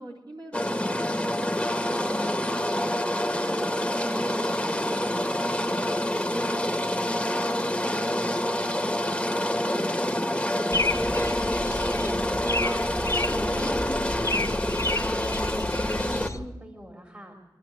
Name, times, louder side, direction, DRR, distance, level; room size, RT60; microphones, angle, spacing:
voice 1, 0.0-2.7 3.4-6.7 7.2-8.0 8.3-11.0, right 1 dB, 65° right, -2 dB, 4.1 m, -46 dB
sound 1, 0.5-16.3, left 1 dB, 10° left, 1.8 m, -27 dB
sound 2, 10.7-16.4, left 2 dB, 35° left, 1.3 m, -31 dB
voice 2, 11.8-17.4, equal, 25° right, 2 dB, 3.7 m, -42 dB
26.5 x 12.0 x 8.2 m, 1.1 s
wide cardioid pair, 55°, 8 cm